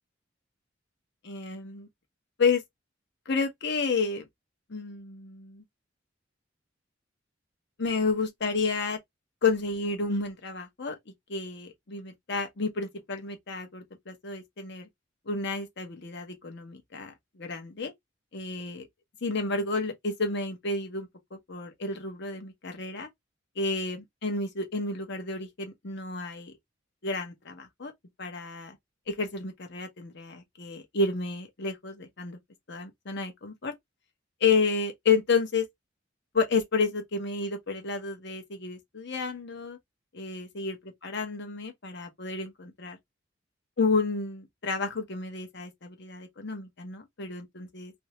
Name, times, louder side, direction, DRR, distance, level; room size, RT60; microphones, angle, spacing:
voice 1, 1.2-1.9 2.4-2.6 3.3-4.3 4.7-5.6 7.8-9.0 9.4-10.9 11.3-14.9 15.3-17.9 18.3-18.9 19.2-21.1 21.5-23.1 23.6-26.5 27.0-27.9 28.2-28.8 29.1-32.4 32.7-33.7 34.4-35.7 36.3-39.8 40.1-43.0 43.8-47.9, left 4 dB, 60° left, 0.9 m, -30 dB
2.8 x 2.7 x 3.1 m
head